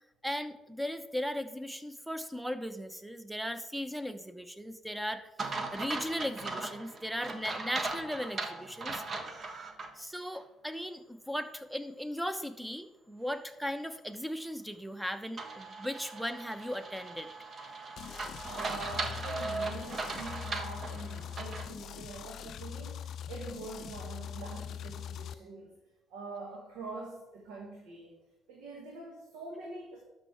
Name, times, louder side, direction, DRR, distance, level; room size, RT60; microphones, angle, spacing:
voice 1, 0.2-5.3 5.7-9.0 10.0-17.3, equal, 5° right, 10 dB, 0.8 m, -37 dB
sound 1, 5.4-9.9 10.3-10.4 15.4-21.7, right 3 dB, 45° right, 1.2 m, -38 dB
sound 2, 18.0-25.3, left 9 dB, 65° left, 0.4 m, -42 dB
voice 2, 18.1-25.8 26.1-28.2 28.5-30.0, right 3 dB, 80° right, -2 dB, 1.6 m, -45 dB
12.5 x 5.5 x 3.4 m, 0.99 s
hypercardioid pair, 60°, 0 cm